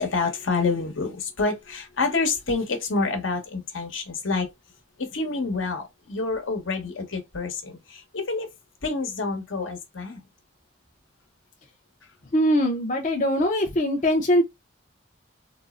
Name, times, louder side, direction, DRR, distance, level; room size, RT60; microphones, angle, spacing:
voice 1, 0.0-4.5 5.0-8.5 8.8-10.2, left 3 dB, 80° left, 1.1 m, -28 dB
voice 2, 12.3-14.4, equal, 40° left, 0.5 m, -22 dB
3.7 x 2.0 x 2.3 m
head